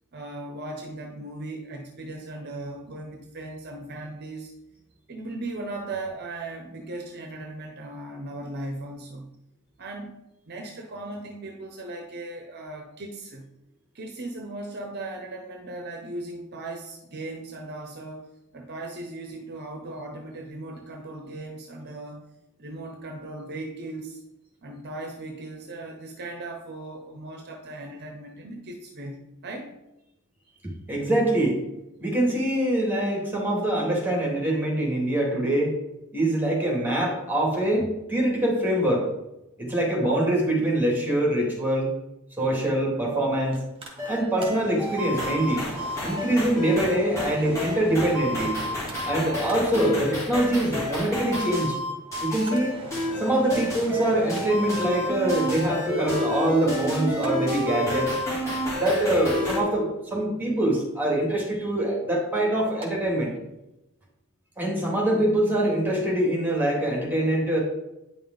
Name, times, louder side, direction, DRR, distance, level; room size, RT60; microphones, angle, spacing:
voice 1, 0.1-4.5 5.1-9.4 9.8-10.1 10.5-13.5 13.9-22.3 22.6-24.2 24.6-29.7, right 2 dB, 50° right, 3 dB, 0.8 m, -37 dB
voice 2, 30.9-31.6 32.0-35.7 36.1-39.1 39.6-41.9 42.4-43.6 44.1-45.7 46.0-48.6 49.1-51.8 52.2-52.8 53.2-58.2 58.7-63.4 64.6-67.6, right 1 dB, 10° right, -2 dB, 2.4 m, -24 dB
Mechanical fan, 43.5-62.9 63.2-63.3, right 1 dB, 25° right, 1.7 m, -44 dB
sound 1, 44.0-59.6, left 1 dB, 15° left, 2.9 m, -30 dB
9.4 x 5.3 x 3.9 m, 0.92 s
head